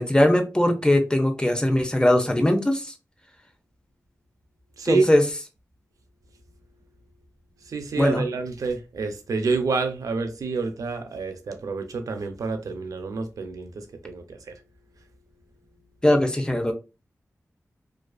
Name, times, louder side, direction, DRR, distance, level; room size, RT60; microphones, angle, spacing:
voice 1, 0.0-2.9 4.8-5.2 8.0-8.2 16.0-16.7, left 1 dB, 15° left, 0.6 m, -20 dB
voice 2, 4.8-5.1 7.7-14.5, right 4 dB, 85° right, 0.4 m, -28 dB
2.4 x 2.3 x 2.3 m
cardioid pair, 40°, 6 cm